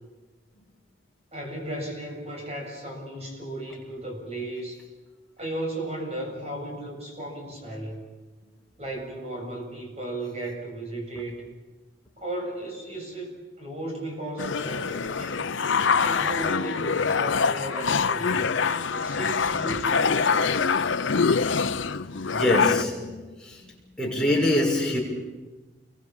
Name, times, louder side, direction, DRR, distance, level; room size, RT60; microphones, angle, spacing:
voice 1, 1.3-4.8 5.4-8.0 8.8-11.4 12.2-13.3 13.6-15.4 16.0-18.5 18.9-20.8, right 1 dB, 35° right, 7.5 m, -35 dB
sound 1, 14.4-22.8, left 5 dB, 80° left, 0.8 m, -25 dB
voice 2, 22.3-23.6 24.0-25.0, left 1 dB, 5° left, 6.2 m, -24 dB
29.5 x 23.5 x 7.3 m
head